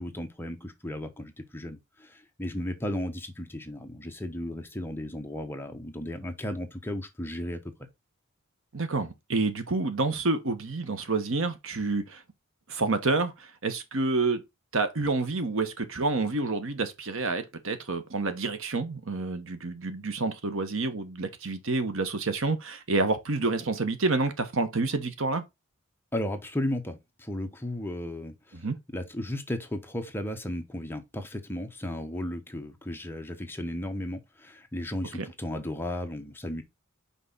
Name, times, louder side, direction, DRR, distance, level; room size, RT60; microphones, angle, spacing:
voice 1, 0.0-7.7 26.1-28.6 28.9-36.6, left 1 dB, 10° left, 1.1 m, -35 dB
voice 2, 8.7-12.2 12.7-14.4 14.7-25.4 28.5-28.8 35.2-35.3, right 3 dB, 65° right, 1.2 m, -28 dB
5.6 x 5.1 x 4.0 m
head